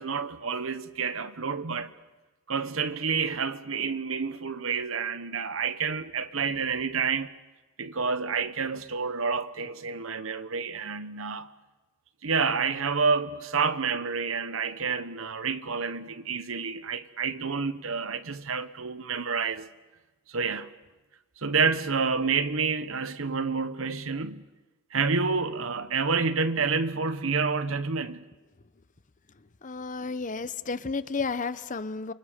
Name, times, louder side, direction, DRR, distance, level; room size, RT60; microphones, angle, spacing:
voice 1, 0.0-1.9 2.5-7.3 7.8-11.5 12.2-19.7 20.3-20.7 21.4-24.4 24.9-28.2, right 5 dB, 75° right, 1.1 m, -29 dB
voice 2, 29.6-32.1, left 4 dB, 40° left, 0.7 m, -32 dB
28.5 x 24.5 x 5.1 m
head